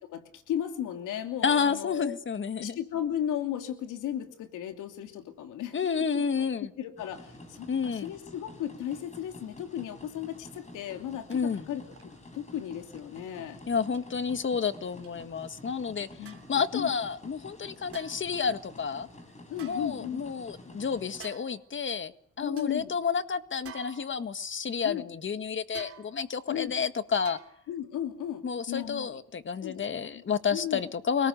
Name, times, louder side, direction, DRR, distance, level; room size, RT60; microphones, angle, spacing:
voice 1, 0.1-2.2 2.6-6.5 6.8-11.8 12.3-13.6 16.2-16.9 19.5-20.3 22.4-22.9 24.8-25.0 26.5-26.7 27.7-29.2 29.6-29.9 30.1-30.2 30.5-30.9, left 10 dB, 85° left, 2.9 m, -35 dB
voice 2, 1.4-2.8 5.7-6.7 7.7-8.1 11.3-11.7 13.7-16.1 16.5-19.1 19.6-22.1 22.4-27.4 28.4-31.3, left 6 dB, 40° left, 1.7 m, -30 dB
sound 1, 7.0-21.2, left 1 dB, 25° left, 7.1 m, -49 dB
sound 2, 11.3-11.4 11.9-12.2 12.9-13.0 13.9-14.0 15.0-15.1 16.2-16.6 17.9-18.4 19.5-20.4 21.2-21.7 22.1-22.2 22.6-22.7 23.6-24.5 25.7-26.4 27.2-27.8 28.2-28.3, right 7 dB, 50° right, 3.3 m, -49 dB
30.0 x 19.5 x 6.7 m
cardioid pair, 90°, 30 cm